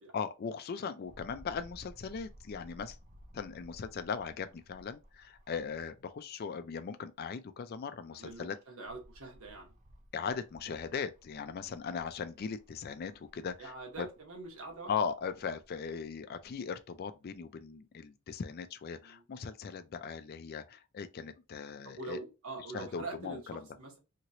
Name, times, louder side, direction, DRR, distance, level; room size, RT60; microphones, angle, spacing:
voice 1, 0.1-3.0 3.3-8.6 10.1-14.1 14.9-22.2 22.7-23.6, left 6 dB, 45° left, 0.3 m, -39 dB
sound 1, 1.0-6.1 6.6-6.7 8.0-16.5 17.3-17.4, equal, 35° right, 0.5 m, -58 dB
voice 2, 8.1-9.7 13.6-14.9 19.0-19.2 21.8-24.0, right 3 dB, 70° right, 1.2 m, -44 dB
2.9 x 2.9 x 2.7 m
head